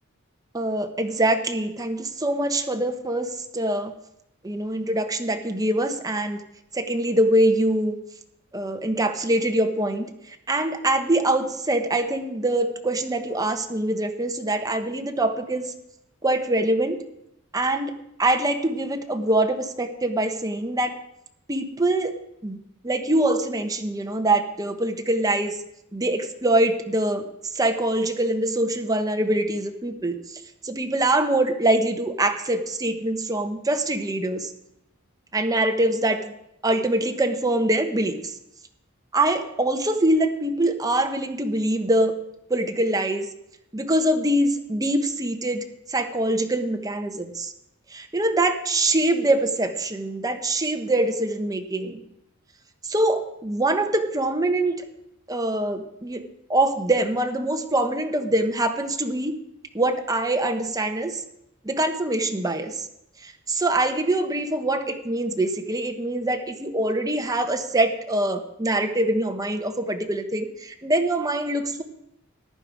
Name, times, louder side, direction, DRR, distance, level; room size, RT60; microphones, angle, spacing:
voice 1, 0.5-3.9 4.4-6.4 6.7-8.0 8.5-10.1 10.5-15.7 16.2-17.0 17.5-20.9 21.5-22.1 22.4-22.6 22.8-25.6 25.9-27.2 27.5-30.2 30.6-34.5 35.3-36.2 36.6-38.2 39.1-42.1 42.5-43.3 43.7-47.5 47.9-52.0 52.9-54.8 55.3-56.2 56.5-59.4 59.7-61.2 61.6-62.9 63.2-71.8, right 1 dB, 15° right, 5 dB, 1.1 m, -24 dB
14.5 x 10.5 x 4.9 m, 0.82 s
head